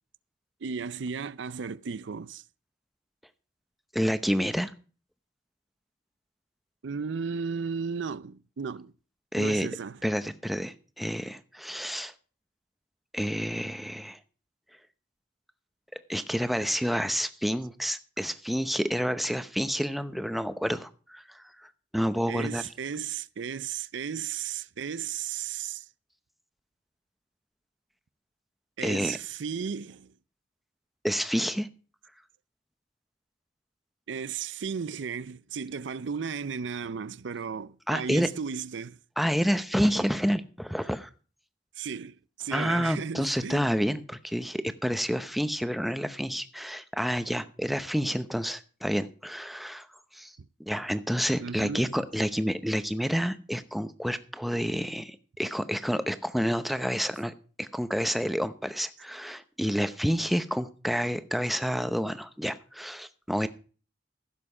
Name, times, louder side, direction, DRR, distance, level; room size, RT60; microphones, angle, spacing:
voice 1, 0.6-2.4 6.8-8.9 9.4-10.0 22.3-25.8 28.8-30.1 34.1-39.0 41.8-43.7 51.4-51.9, right 6 dB, 90° right, 0.5 m, -35 dB
voice 2, 3.9-4.7 9.3-9.7 10.0-12.1 13.1-14.2 16.1-22.6 28.8-29.2 31.0-31.7 37.9-38.3 39.2-41.1 42.5-49.9 50.1-50.3 50.6-63.5, equal, ahead, 0.7 m, -29 dB
15.5 x 7.5 x 4.9 m
head